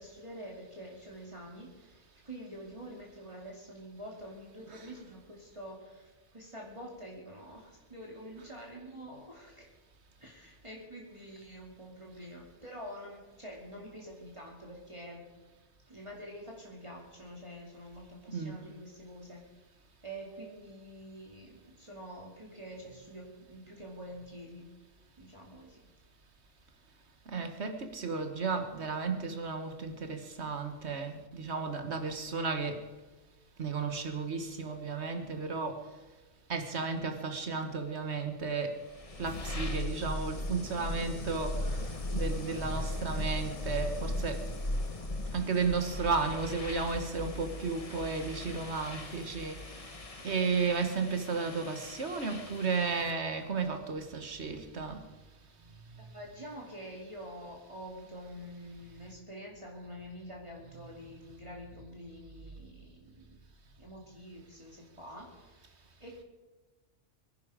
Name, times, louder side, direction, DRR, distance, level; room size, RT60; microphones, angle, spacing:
voice 1, 0.0-9.7 10.2-15.2 15.9-19.4 20.0-24.7 25.2-25.8 56.0-63.4 63.8-65.7 66.0-66.2, equal, 25° right, -3 dB, 2.6 m, -47 dB
voice 2, 18.3-18.6 27.3-32.8 33.6-35.8 36.5-38.7 39.2-41.7 42.1-44.4 45.3-49.6 50.2-55.0, right 4 dB, 60° right, 6 dB, 1.8 m, -33 dB
sound 1, 38.6-53.3, left 1 dB, 30° left, 1.2 m, -38 dB
23.5 x 10.5 x 5.0 m, 1.2 s
omnidirectional pair, 1.3 m